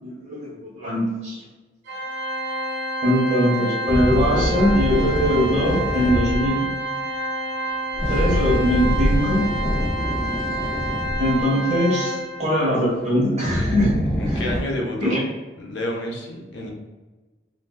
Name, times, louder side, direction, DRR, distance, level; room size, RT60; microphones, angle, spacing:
voice 1, 0.0-1.4 3.0-6.7 8.1-9.4 11.2-14.4 15.0-15.2, equal, 35° right, -5 dB, 1.0 m, -21 dB
Organ, 1.9-12.6, right 1 dB, 85° right, 0.7 m, -29 dB
sound 1, 3.9-6.6 7.9-11.5 12.9-13.0 13.4-14.6, equal, 5° left, 0.3 m, -25 dB
voice 2, 14.2-15.2 15.6-16.7, left 1 dB, 65° left, 0 dB, 0.6 m, -29 dB
3.4 x 2.6 x 2.3 m, 1.2 s
head